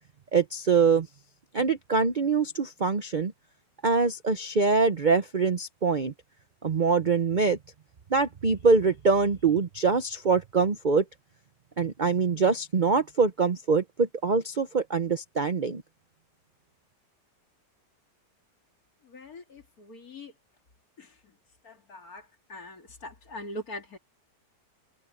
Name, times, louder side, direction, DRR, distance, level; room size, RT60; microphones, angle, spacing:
voice 1, 0.3-1.1 1.5-3.3 3.8-6.1 6.6-7.6 8.1-11.0 11.8-15.8, right 4 dB, 45° right, 0.6 m, -24 dB
voice 2, 19.9-20.3 22.1-22.2 22.5-22.7 23.3-24.0, left 1 dB, 55° left, 2.8 m, -39 dB
open air
omnidirectional pair, 1.9 m